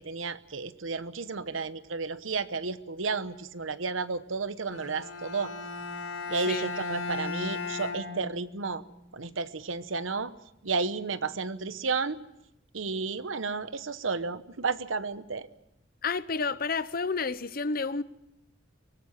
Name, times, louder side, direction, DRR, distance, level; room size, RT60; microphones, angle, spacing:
voice 1, 0.0-5.5 6.3-8.8 9.1-10.3 10.6-12.2 12.7-15.5, right 4 dB, 85° right, 1.0 m, -32 dB
Bowed string instrument, 4.7-8.8, left 4 dB, 85° left, 6.0 m, -36 dB
voice 2, 16.0-18.0, left 4 dB, 50° left, 0.8 m, -30 dB
24.0 x 18.5 x 7.3 m
head